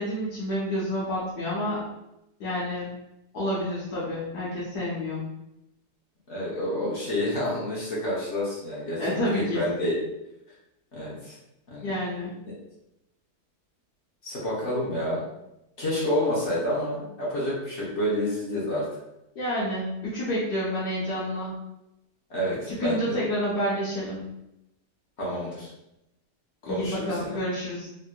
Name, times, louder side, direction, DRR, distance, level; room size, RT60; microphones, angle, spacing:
voice 1, 0.0-1.8 2.4-2.9 3.3-5.2 9.0-9.6 11.8-12.3 19.4-21.5 22.7-24.2 26.7-27.9, equal, 75° left, -8 dB, 1.3 m, -29 dB
voice 2, 6.3-10.0 10.9-11.3 11.7-12.0 14.2-15.2 15.8-18.8 22.3-23.2 25.2-25.7 26.6-27.4, left 1 dB, 50° left, -6 dB, 1.1 m, -29 dB
3.4 x 2.6 x 2.2 m, 0.87 s
omnidirectional pair, 1.8 m